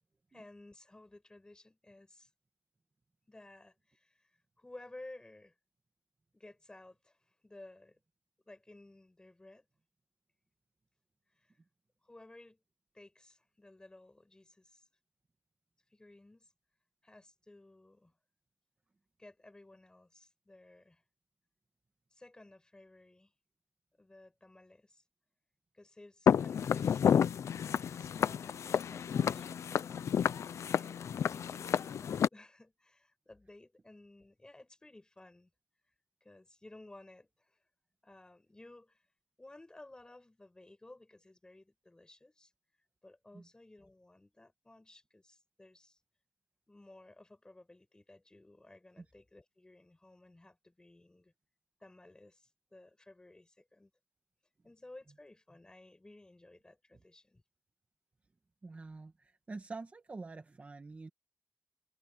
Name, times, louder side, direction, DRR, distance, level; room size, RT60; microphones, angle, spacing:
voice 1, 0.3-2.3 3.3-5.5 6.3-7.2 7.4-8.0 8.5-9.7 11.3-11.6 12.0-12.6 12.9-14.8 15.9-16.5 17.0-18.1 19.2-21.0 22.1-23.3 24.0-25.0 25.7-27.4 27.6-30.2 30.8-35.5 36.2-37.6 38.0-39.1 39.4-42.5 43.0-46.0 46.7-51.3 51.8-53.9 54.6-57.4, left 2 dB, 15° left, 7.6 m, -56 dB
Walk footsteps, 26.3-32.3, left 8 dB, 80° left, 0.6 m, -30 dB
voice 2, 58.6-61.1, right 3 dB, 30° right, 2.0 m, -46 dB
wide cardioid pair, 130°, 5 cm